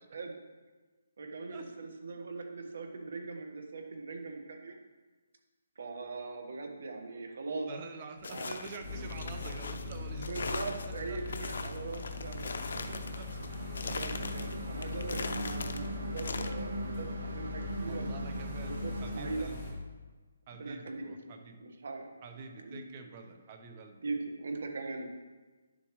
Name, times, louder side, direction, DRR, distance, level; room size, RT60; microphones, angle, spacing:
voice 1, 1.2-4.8 5.8-7.7 8.2-8.5 10.2-12.6 13.9-18.0 18.6-19.5 20.5-21.1 21.6-22.1 22.6-22.8 24.0-25.1, right 3 dB, 60° right, 4 dB, 1.4 m, -40 dB
voice 2, 7.7-10.4 11.1-11.2 11.6-11.7 12.9-14.0 17.8-18.8 19.0-19.8 20.5-21.6 22.2-24.1, right 4 dB, 25° right, 5 dB, 0.9 m, -47 dB
sound 1, 8.2-16.5, left 4 dB, 60° left, 0.7 m, -41 dB
sound 2, 8.8-19.7, left 4 dB, 20° left, 2.5 m, -41 dB
sound 3, 12.1-19.4, right 1 dB, 80° right, 1.2 m, -41 dB
10.0 x 7.2 x 3.1 m, 1.3 s
hypercardioid pair, 170°, 0 cm